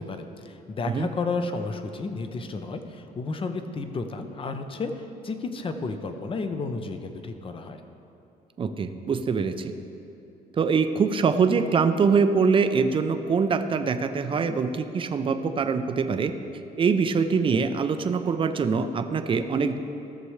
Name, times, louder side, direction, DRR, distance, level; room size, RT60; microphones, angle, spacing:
voice 1, 0.0-7.8, left 3 dB, 30° left, 7 dB, 0.7 m, -32 dB
voice 2, 8.6-9.7 10.6-16.3 16.8-19.8, right 5 dB, 30° right, 8 dB, 0.6 m, -24 dB
16.0 x 6.8 x 3.2 m, 2.9 s
cardioid pair, 110°, 17 cm